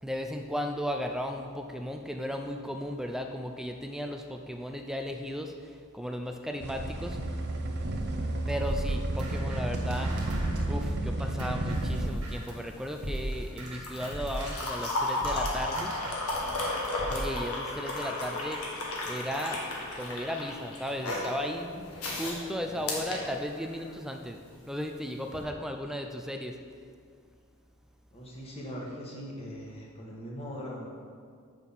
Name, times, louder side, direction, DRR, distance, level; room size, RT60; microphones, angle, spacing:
voice 1, 0.0-7.2 8.5-10.1 10.7-15.9 17.1-18.6 19.0-19.6 19.9-24.4 24.7-26.6, equal, ahead, 4 dB, 0.4 m, -35 dB
sound 1, 6.6-12.1, right 1 dB, 50° right, 0.7 m, -31 dB
sound 2, 8.7-12.6 13.0-17.4, right 1 dB, 90° right, 1.4 m, -38 dB
sound 3, 11.7-24.0 25.2-25.4, left 2 dB, 80° left, 1.6 m, -34 dB
voice 2, 28.1-30.9, equal, 25° left, -3 dB, 1.5 m, -41 dB
6.3 x 5.6 x 7.1 m, 2.1 s
head